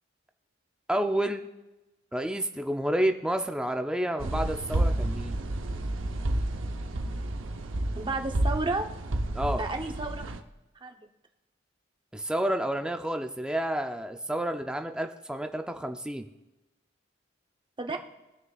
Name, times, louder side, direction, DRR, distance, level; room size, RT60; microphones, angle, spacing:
voice 1, 0.9-1.5 2.1-5.4 9.3-9.6 12.1-16.3, right 1 dB, 5° right, 5 dB, 0.5 m, -30 dB
sound 1, 4.2-10.4, right 1 dB, 85° right, 0.7 m, -30 dB
voice 2, 7.9-8.9 9.6-10.3 10.8-11.1 17.8-18.0, right 2 dB, 25° right, 4 dB, 0.8 m, -32 dB
19.5 x 6.5 x 2.4 m, 1.0 s
head